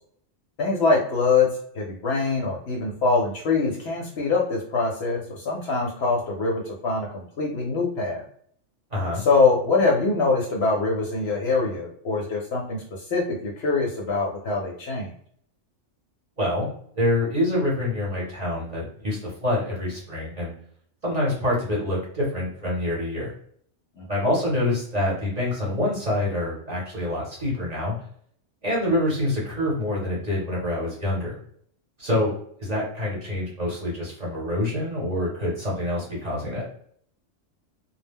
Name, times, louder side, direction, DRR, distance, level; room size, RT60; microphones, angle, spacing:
voice 1, 0.6-1.5 1.7-8.2 9.2-12.8 13.1-15.1 24.0-24.1, left 3 dB, 65° left, -1 dB, 0.7 m, -23 dB
voice 2, 8.9-9.2 16.4-16.7 16.9-20.5 21.0-23.3 24.1-27.9 28.6-31.4 32.0-32.3 32.6-36.7, left 1 dB, 35° right, -5 dB, 0.9 m, -26 dB
2.2 x 2.0 x 3.4 m, 0.62 s
omnidirectional pair, 1.3 m